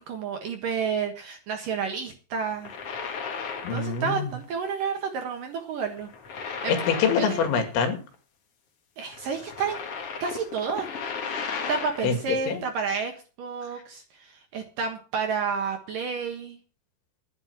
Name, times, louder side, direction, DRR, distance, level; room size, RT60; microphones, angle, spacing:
voice 1, 0.0-2.7 3.7-6.1 6.6-6.8 7.3-7.5 9.0-9.8 10.2-10.9 11.7-13.1 13.4-16.6, right 5 dB, 60° right, 5 dB, 2.6 m, -30 dB
sound 1, 2.5-4.1 4.4-4.7 6.0-8.2 9.1-12.2, left 5 dB, 50° left, 1.8 m, -35 dB
voice 2, 3.6-4.3 6.7-8.0 12.0-12.2 12.5-12.6, left 6 dB, 85° left, 6 dB, 4.6 m, -25 dB
12.0 x 10.5 x 6.0 m, 0.36 s
omnidirectional pair, 5.2 m